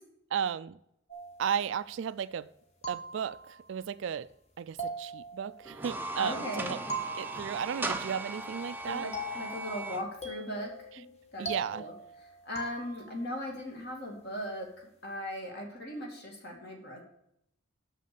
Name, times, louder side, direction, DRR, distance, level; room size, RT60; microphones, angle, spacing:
voice 1, 0.3-0.8 1.4-2.5 2.9-4.3 4.6-6.8 7.2-9.1 11.4-11.8, right 7 dB, 65° right, 0.3 m, -34 dB
sound 1, 1.1-2.2 2.8-3.8 4.8-6.3 6.9-8.1 9.1-13.4, right 2 dB, 35° left, 1.3 m, -42 dB
sound 2, 5.7-10.0, right 2 dB, 10° right, 0.6 m, -38 dB
voice 2, 6.2-6.8 8.8-11.0 11.3-11.9 12.5-17.0, equal, 50° left, 2.3 m, -38 dB
6.4 x 6.4 x 6.9 m
head